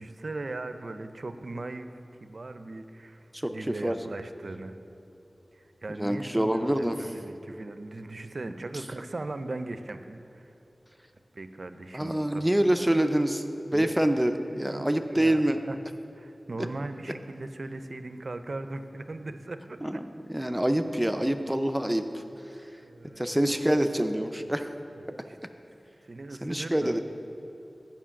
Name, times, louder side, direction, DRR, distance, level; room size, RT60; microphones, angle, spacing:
voice 1, 0.0-4.8 5.5-10.5 11.3-12.4 12.8-12.9 13.7-14.0 14.3-15.8 16.1-20.0 22.8-23.4 24.9-25.4 26.1-27.0, right 2 dB, 65° right, 9 dB, 0.4 m, -39 dB
voice 2, 3.3-4.0 6.0-7.0 11.9-15.6 19.8-20.0 20.3-22.2 23.2-24.7 26.4-27.0, right 1 dB, 10° right, 7 dB, 0.5 m, -26 dB
7.5 x 5.4 x 7.0 m, 2.9 s
wide cardioid pair, 45°, 0 cm